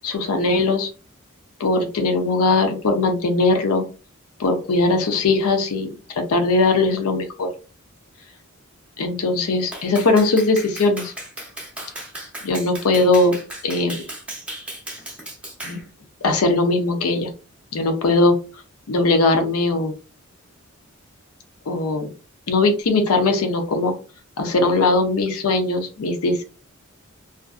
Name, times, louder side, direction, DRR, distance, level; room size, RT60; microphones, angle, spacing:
voice 1, 0.0-0.9 1.6-3.9 4.4-7.5 9.0-11.1 12.4-14.0 15.6-15.8 16.2-17.3 17.7-18.4 18.9-19.9 21.7-22.1 22.5-23.9 24.4-26.5, left 2 dB, 85° left, 5 dB, 0.6 m, -20 dB
Clapping, 9.7-15.8, right 1 dB, 5° right, 0.5 m, -36 dB
2.5 x 2.4 x 2.3 m, 0.34 s
head